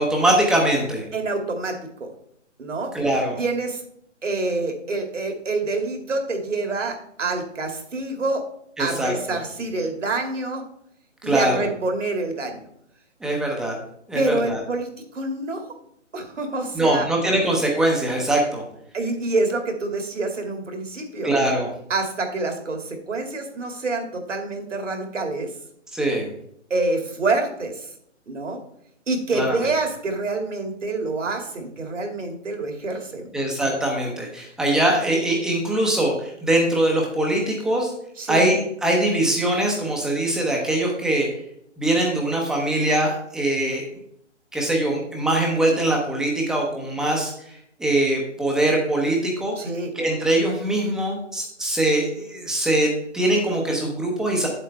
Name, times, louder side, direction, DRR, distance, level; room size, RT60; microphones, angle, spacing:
voice 1, 0.0-1.0 2.9-3.4 8.8-9.4 11.2-11.7 13.2-13.7 14.1-14.6 16.7-18.6 21.2-21.7 25.9-26.3 29.3-29.5 33.3-37.9 38.3-41.3 41.8-43.8 44.5-47.5 47.8-49.6 49.9-54.5, right 1 dB, ahead, -1 dB, 0.7 m, -22 dB
voice 2, 1.1-2.1 2.6-2.9 3.4-3.8 4.2-8.4 8.8-10.6 11.2-12.7 14.1-15.6 16.1-17.1 18.9-21.3 21.9-25.5 26.7-27.9 28.3-28.6 29.1-33.3 38.2-38.4 49.6-49.9, right 3 dB, 75° right, 4 dB, 2.3 m, -27 dB
8.6 x 7.8 x 3.3 m, 0.72 s
hypercardioid pair, 145°, 37 cm